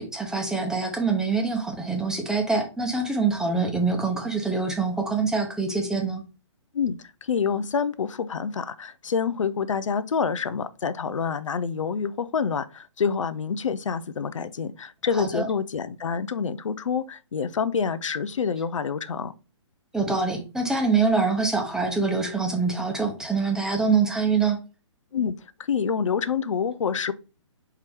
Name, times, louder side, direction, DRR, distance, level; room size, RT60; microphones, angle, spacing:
voice 1, 0.0-6.2 15.2-15.4 19.9-24.6, right 4 dB, 5° right, 0.7 m, -25 dB
voice 2, 6.7-19.3 25.1-25.3 25.6-27.1, left 6 dB, 85° left, 0.5 m, -27 dB
4.6 x 2.9 x 3.4 m
hypercardioid pair, 140°, 16 cm